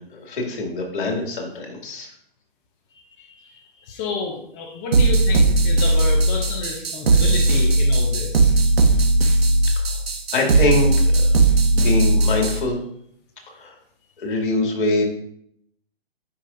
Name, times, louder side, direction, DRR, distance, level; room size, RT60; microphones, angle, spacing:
voice 1, 0.0-2.1 3.2-3.5 4.7-4.8 9.7-9.9 10.3-11.3 11.7-12.8 13.5-13.8 14.2-15.1, left 2 dB, 60° left, 1 dB, 2.2 m, -24 dB
voice 2, 3.9-8.5, left 4 dB, 10° left, 1 dB, 0.3 m, -30 dB
sound 1, 4.9-12.6, right 2 dB, 80° right, 1.1 m, -17 dB
10.0 x 5.3 x 2.5 m, 0.70 s
hypercardioid pair, 135°, 30 cm